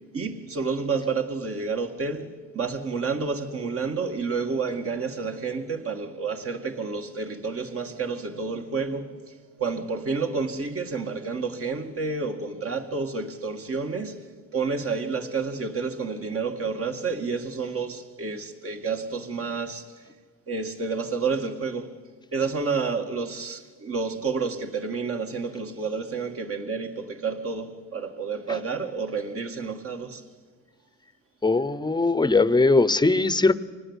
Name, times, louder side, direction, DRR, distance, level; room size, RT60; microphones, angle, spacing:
voice 1, 0.1-9.2 9.6-14.2 14.5-19.9 20.5-21.9 22.3-30.2, right 4 dB, 50° right, 2.2 m, -30 dB
voice 2, 31.4-33.5, left 3 dB, 15° left, 0.8 m, -20 dB
25.0 x 19.5 x 8.2 m
cardioid pair, 90°, 30 cm